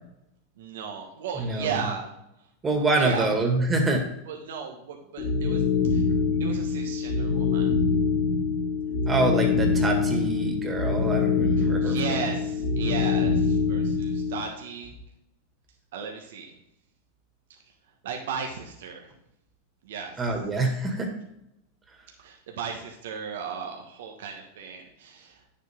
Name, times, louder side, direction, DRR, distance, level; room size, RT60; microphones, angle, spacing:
voice 1, 0.6-2.1 2.9-3.3 4.3-6.0 6.4-7.7 11.6-14.9 15.9-16.6 18.0-19.1 19.8-20.2 22.2-25.4, right 6 dB, 75° right, 1 dB, 1.3 m, -35 dB
voice 2, 1.4-1.8 2.6-4.0 9.1-12.2 20.2-21.1, right 2 dB, 20° right, 3 dB, 2.0 m, -26 dB
sound 1, 5.2-14.4, left 5 dB, 55° left, 1.9 m, -24 dB
9.1 x 7.3 x 3.7 m, 0.83 s
hypercardioid pair, 110°, 0 cm